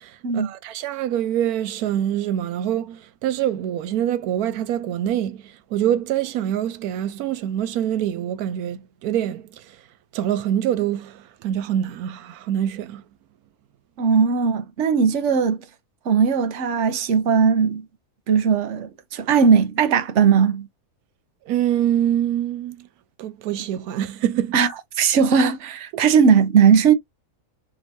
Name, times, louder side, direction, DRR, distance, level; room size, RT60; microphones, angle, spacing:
voice 1, 0.0-9.8 10.1-13.0 21.5-22.9 23.2-24.5 25.9-26.0, right 11 dB, 85° right, 1.1 m, -25 dB
voice 2, 14.0-15.6 16.0-17.9 18.3-20.7 24.5-24.7 25.0-26.9, right 6 dB, 55° right, 1.1 m, -18 dB
5.3 x 3.1 x 2.5 m
omnidirectional pair, 1.6 m